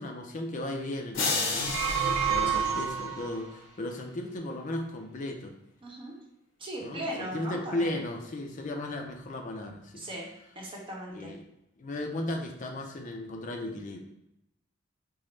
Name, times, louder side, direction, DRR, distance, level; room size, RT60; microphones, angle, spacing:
voice 1, 0.0-5.5 6.8-10.0 11.1-11.4 11.8-14.0, left 1 dB, 40° left, 2 dB, 0.4 m, -36 dB
sound 1, 1.1-3.5, left 3 dB, 75° left, 0.9 m, -32 dB
sound 2, 1.5-3.4, right 7 dB, 85° right, 0.4 m, -29 dB
voice 2, 2.4-2.8 5.8-6.2 6.6-7.9 10.0-10.3 10.5-11.3, right 1 dB, 25° right, -3 dB, 0.8 m, -38 dB
5.2 x 2.0 x 3.2 m, 0.83 s
head